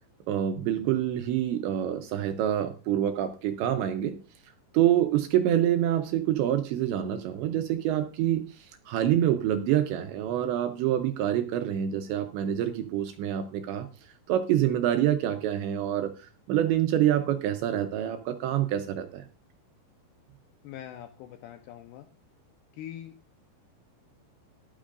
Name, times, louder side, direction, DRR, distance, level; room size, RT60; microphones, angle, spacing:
voice 1, 0.3-4.2 4.7-19.2, right 11 dB, 80° right, 7 dB, 2.7 m, -26 dB
voice 2, 20.6-22.1 22.7-23.2, left 11 dB, 80° left, 5 dB, 2.4 m, -43 dB
14.0 x 12.5 x 2.5 m, 0.34 s
omnidirectional pair, 5.8 m